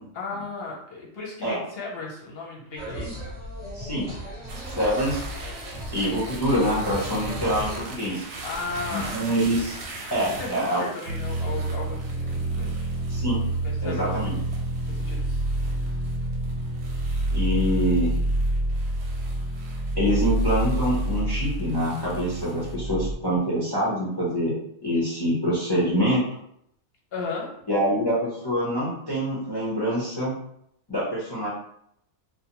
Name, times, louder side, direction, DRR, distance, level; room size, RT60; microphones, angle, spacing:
voice 1, 0.1-3.2 8.4-9.3 10.2-12.8 13.6-14.4 14.9-15.2 27.1-27.6, left 4 dB, 55° left, -2 dB, 0.8 m, -35 dB
Seven Sisters - Record shop (Every Bodies Music), 2.8-7.8, equal, 30° right, 0.6 m, -36 dB
voice 2, 3.7-4.1 4.7-5.2 5.9-8.2 8.9-9.8 10.1-10.8 13.1-13.4 13.8-14.3 17.3-18.1 20.0-24.5 24.8-26.2 27.7-30.3 30.9-31.5, equal, 30° left, -7 dB, 0.4 m, -25 dB
sound 1, 4.5-22.7, right 3 dB, 65° right, 0.8 m, -42 dB
sound 2, 11.1-23.1, right 1 dB, 85° right, 1.0 m, -27 dB
2.4 x 2.1 x 2.8 m, 0.73 s
omnidirectional pair, 1.4 m